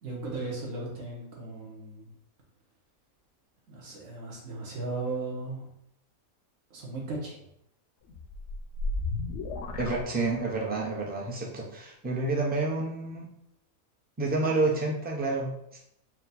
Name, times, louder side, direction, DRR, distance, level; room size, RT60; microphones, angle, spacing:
voice 1, 0.0-2.1 3.7-5.7 6.7-7.4, right 3 dB, 65° right, -3 dB, 1.5 m, -36 dB
sound 1, 8.1-10.8, left 2 dB, 65° left, 0.8 m, -34 dB
voice 2, 9.8-13.3 14.2-15.8, right 3 dB, 10° right, -2 dB, 0.4 m, -29 dB
4.5 x 2.2 x 4.0 m, 0.77 s
omnidirectional pair, 1.5 m